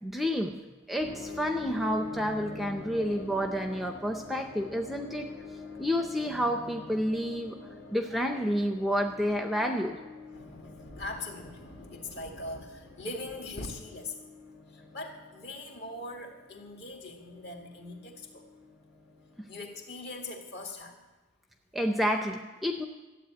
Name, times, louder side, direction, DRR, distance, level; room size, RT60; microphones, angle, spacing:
voice 1, 0.0-0.5 0.9-5.3 5.8-7.6 7.9-10.0 21.7-22.9, equal, ahead, 4 dB, 0.6 m, -29 dB
sound 1, 1.0-20.7, left 3 dB, 85° left, 3.6 m, -46 dB
voice 2, 10.3-14.1 14.9-18.4 19.5-20.9, left 2 dB, 50° left, 2 dB, 2.1 m, -41 dB
13.5 x 8.3 x 9.1 m, 1.2 s
head